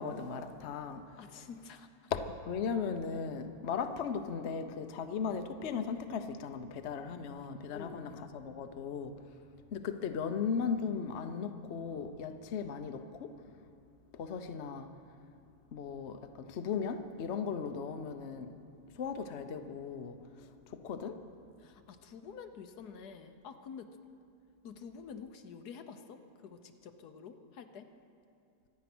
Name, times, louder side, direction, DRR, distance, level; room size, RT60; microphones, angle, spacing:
voice 1, 0.0-1.0 2.1-9.1 9.7-13.3 14.1-14.9 15.7-18.6 18.9-21.2, left 6 dB, 50° left, 8 dB, 1.0 m, -37 dB
voice 2, 1.2-1.9 7.7-8.1 21.6-23.9 24.6-27.9, left 6 dB, 80° left, 8 dB, 1.4 m, -48 dB
25.0 x 9.6 x 6.1 m, 2.4 s
omnidirectional pair, 1.7 m